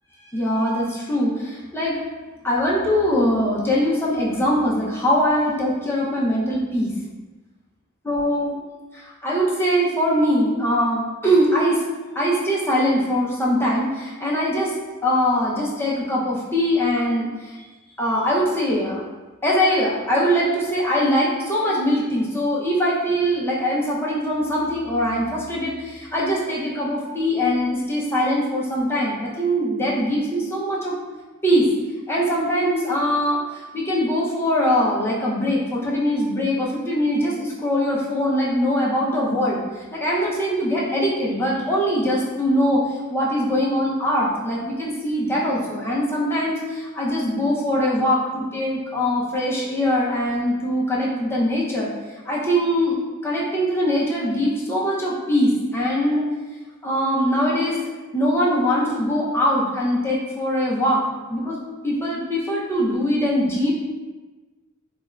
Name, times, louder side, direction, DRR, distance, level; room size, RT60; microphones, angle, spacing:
voice 1, 0.3-2.0 2.4-6.9 8.0-8.5 8.9-11.8 12.1-14.7 15.0-17.7 18.0-19.0 19.4-31.0 31.4-31.7 32.1-51.9 52.3-53.0 53.2-56.2 56.8-57.8 58.1-61.0 61.3-61.6 61.8-63.7, equal, 10° left, -6 dB, 0.5 m, -22 dB
3.2 x 2.3 x 2.2 m, 1.2 s
head